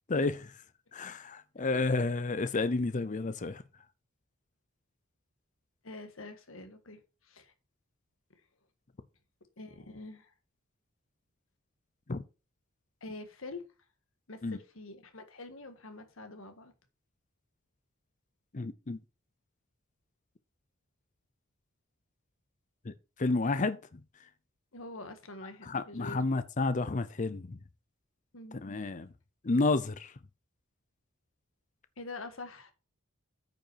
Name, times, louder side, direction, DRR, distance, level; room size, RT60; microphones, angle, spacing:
voice 1, 0.1-0.6 0.9-3.6 12.1-12.2 14.4-14.6 18.5-19.0 22.8-22.9 23.2-24.0 25.7-27.6 28.6-29.1 29.4-30.1, left 3 dB, 35° left, 0.6 m, -31 dB
voice 2, 5.8-7.5 9.6-10.3 13.0-13.6 14.3-16.7 24.7-26.2 28.3-28.7 32.0-32.7, left 2 dB, 70° left, 1.6 m, -45 dB
9.0 x 5.4 x 4.6 m
head